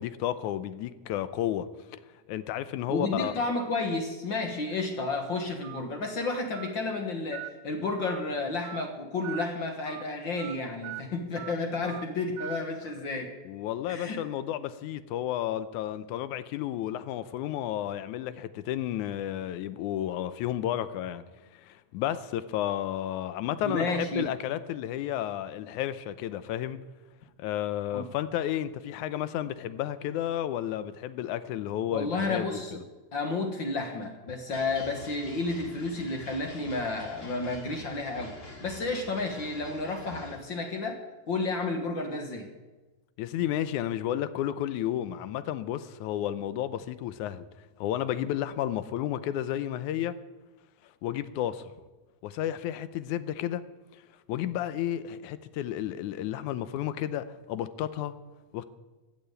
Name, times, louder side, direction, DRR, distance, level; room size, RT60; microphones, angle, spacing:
voice 1, 0.0-2.0 2.3-3.3 13.5-21.2 21.5-26.8 27.4-32.8 43.2-47.5 47.8-50.2 51.0-51.7 52.2-53.7 53.9-54.0 54.3-58.1 58.5-58.6, left 11 dB, 85° left, 14 dB, 2.1 m, -32 dB
voice 2, 2.9-13.3 13.9-14.2 23.6-24.3 27.9-28.1 31.9-32.8 33.1-41.0 41.3-42.5, left 3 dB, 50° left, 4 dB, 1.6 m, -31 dB
Telephone, 5.6-5.8 6.5-6.7 7.3-7.5 8.0-8.2 8.6-8.8 9.2-9.5 9.9-10.0 10.4-10.5 10.8-11.0 11.4-11.5 11.8-12.0 12.4-12.6, right 19 dB, 85° right, 2.1 m, -40 dB
sound 1, 34.5-40.4, left 1 dB, 25° left, 2.3 m, -46 dB
15.0 x 7.2 x 8.9 m, 1.2 s
omnidirectional pair, 3.4 m